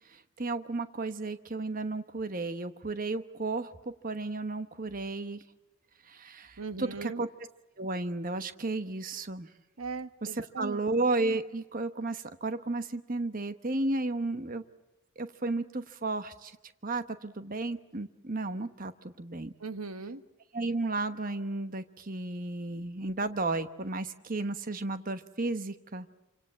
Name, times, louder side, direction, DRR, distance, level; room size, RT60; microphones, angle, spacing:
voice 1, 0.1-5.4 6.0-7.3 7.8-9.5 10.2-10.3 10.6-14.6 15.2-16.6 16.8-19.5 20.5-26.1, right 2 dB, 40° right, 10 dB, 1.1 m, -33 dB
voice 2, 6.6-7.2 9.8-10.9 19.6-20.2, right 4 dB, 90° right, 11 dB, 1.3 m, -39 dB
28.0 x 25.5 x 7.4 m, 0.99 s
head